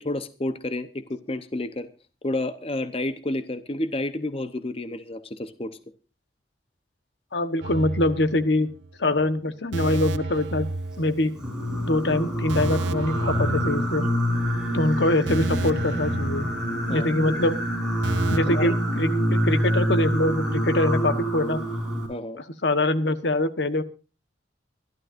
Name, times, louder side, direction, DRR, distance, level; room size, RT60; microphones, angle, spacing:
voice 1, 0.0-1.9 2.2-5.8 16.9-17.1 18.5-18.8 22.1-22.4, left 1 dB, 30° left, 12 dB, 0.8 m, -30 dB
voice 2, 7.3-8.7 9.0-10.7 11.0-11.3 11.9-14.1 14.7-16.5 16.9-17.6 18.3-21.6 22.6-23.8, left 1 dB, 75° left, 12 dB, 1.2 m, -24 dB
sound 1, 7.6-8.9 9.2-9.3 9.7-11.7 11.9-12.1 12.5-14.4 14.7-14.8 15.3-17.2 17.5-17.6 18.0-18.4, right 2 dB, 85° right, 0.7 m, -31 dB
Singing, 11.4-22.1, equal, 5° right, 6.2 m, -26 dB
25.0 x 12.0 x 2.6 m, 0.32 s
head